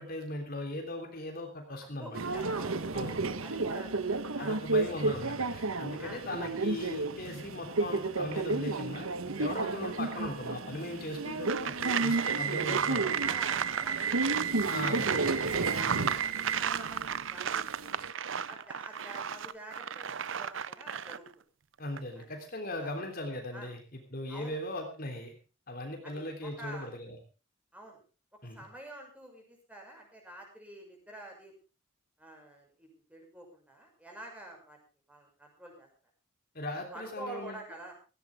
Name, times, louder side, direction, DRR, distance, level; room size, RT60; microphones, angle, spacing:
voice 1, 0.0-2.2 2.9-3.2 4.4-9.1 9.4-13.1 14.7-15.4 21.8-25.3 25.7-27.2 28.4-28.6 36.5-37.6, left 1 dB, 45° left, 3 dB, 3.4 m, -38 dB
voice 2, 1.7-2.9 3.4-4.0 4.3-4.6 6.0-6.2 9.9-10.0 12.7-14.6 15.1-18.1 18.5-21.3 22.1-22.2 22.8-22.9 23.5-23.7 24.3-24.6 26.0-26.9 27.7-28.0 28.5-31.5 32.2-34.8 35.1-35.9 36.9-37.9, right 1 dB, 5° right, 1 dB, 6.3 m, -47 dB
Subway metro underground, 2.1-18.1, right 3 dB, 90° right, 1.2 m, -32 dB
sound 1, 11.5-21.3 21.8-22.0, right 8 dB, 65° right, 0.6 m, -35 dB
17.5 x 16.5 x 3.6 m, 0.33 s
head